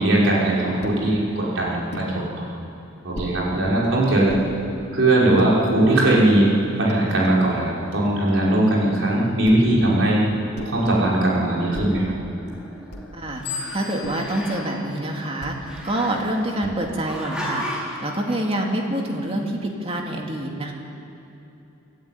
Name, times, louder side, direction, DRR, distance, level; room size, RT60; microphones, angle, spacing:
voice 1, 0.0-2.4 3.0-4.4 4.9-6.5 6.8-10.2 10.6-12.0, right 1 dB, 70° right, -5 dB, 5.6 m, -19 dB
sound 1, 0.8-1.1 1.9-2.1 3.1-3.4 4.3-4.5 5.2-5.6 6.3-6.4 6.6-7.6 9.4-9.8 10.5-10.9 11.7-12.1 12.9-13.3 14.0-14.4 15.4-15.7 16.6-17.1, left 1 dB, 55° left, 2.7 m, -36 dB
Growling, 11.9-13.1 13.4-14.8 15.6-16.6 17.1-18.0, equal, 5° right, 4.1 m, -34 dB
voice 2, 13.1-13.5 13.7-20.7, right 1 dB, 30° right, 1 dB, 2.5 m, -26 dB
sound 2, 13.4-15.9, left 5 dB, 30° left, 6.9 m, -37 dB
24.5 x 13.0 x 9.6 m, 2.9 s
head